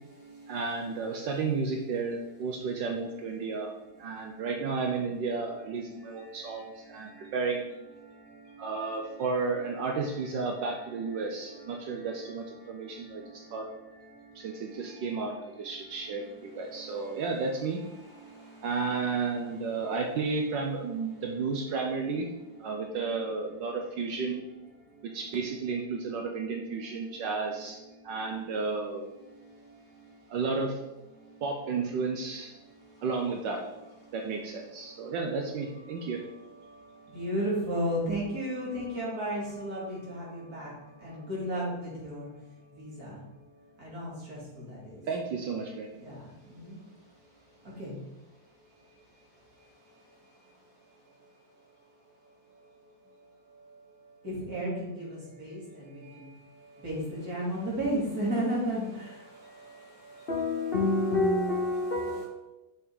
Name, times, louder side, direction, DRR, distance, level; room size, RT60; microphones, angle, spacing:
voice 1, 0.5-7.7 8.6-13.7 14.3-17.8 18.6-22.3 22.6-24.5 25.0-29.1 30.3-30.8 31.4-32.5 33.0-33.7 34.1-36.2 45.1-46.0, right 4 dB, 70° right, 1.4 m, -32 dB
voice 2, 37.1-40.7 41.0-42.2 42.8-42.9 43.8-44.1 47.8-47.9 54.2-54.7 55.4-55.6 56.8-57.0 57.2-58.8, right 1 dB, 50° right, 3.2 m, -31 dB
voice 3, 60.3-62.2, left 2 dB, 50° left, 0.7 m, -27 dB
6.5 x 5.5 x 4.8 m
omnidirectional pair, 2.1 m